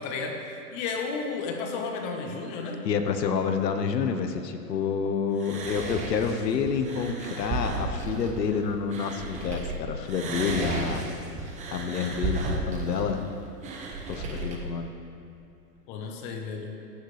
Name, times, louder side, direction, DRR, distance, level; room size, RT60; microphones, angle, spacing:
voice 1, 0.0-2.8 15.9-16.8, left 4 dB, 35° left, 3 dB, 1.3 m, -33 dB
voice 2, 2.8-11.0 11.7-13.2 14.1-14.9, left 6 dB, 80° left, 7 dB, 1.2 m, -28 dB
sound 1, 5.4-9.7 10.1-14.6, right 3 dB, 15° right, 0.8 m, -34 dB
15.0 x 9.1 x 3.4 m, 2.7 s
hypercardioid pair, 140°, 49 cm